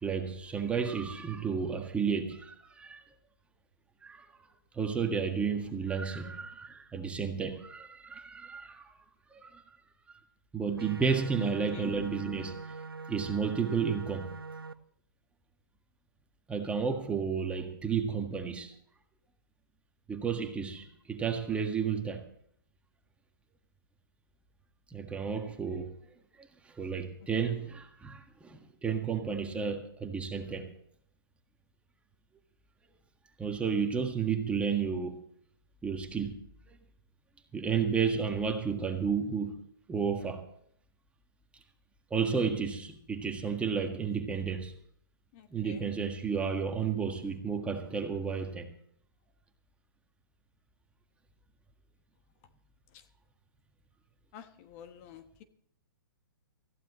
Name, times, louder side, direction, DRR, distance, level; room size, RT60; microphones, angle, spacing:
voice 1, 0.0-3.0 4.0-4.2 4.7-8.9 9.3-9.6 10.5-12.6 13.1-14.3 16.5-18.7 20.1-22.3 24.9-25.9 26.4-30.7 33.4-35.2 35.8-36.3 37.5-39.5 39.9-40.4 42.1-44.7 45.5-48.7, right 6 dB, 10° right, 1.6 m, -32 dB
sound 1, 10.8-14.7, right 4 dB, 85° right, 0.8 m, -43 dB
voice 2, 11.4-11.9 27.5-27.6 45.3-45.9 54.3-55.4, left 10 dB, 40° left, 1.2 m, -47 dB
20.0 x 15.0 x 3.1 m
figure-of-eight pair, 125°, 12 cm